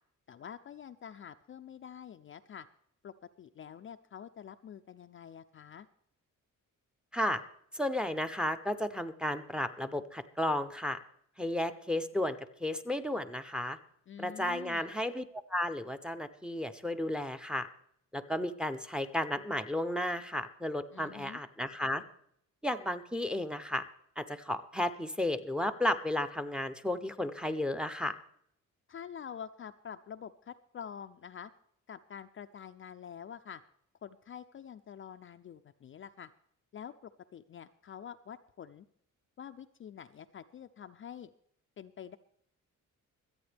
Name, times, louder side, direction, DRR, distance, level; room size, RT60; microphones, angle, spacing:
voice 1, 0.3-2.7 3.0-5.9 14.1-14.9 20.9-21.4 28.9-31.5 31.9-33.6 34.0-36.3 36.7-38.9 39.4-41.3 41.8-42.2, left 8 dB, 40° left, 8 dB, 0.4 m, -47 dB
voice 2, 7.7-11.0 11.4-13.8 14.2-17.7 18.1-22.0 22.6-23.8 24.2-28.1, left 1 dB, 5° right, 11 dB, 0.6 m, -33 dB
25.0 x 8.8 x 3.4 m, 0.69 s
wide cardioid pair, 160°, 32 cm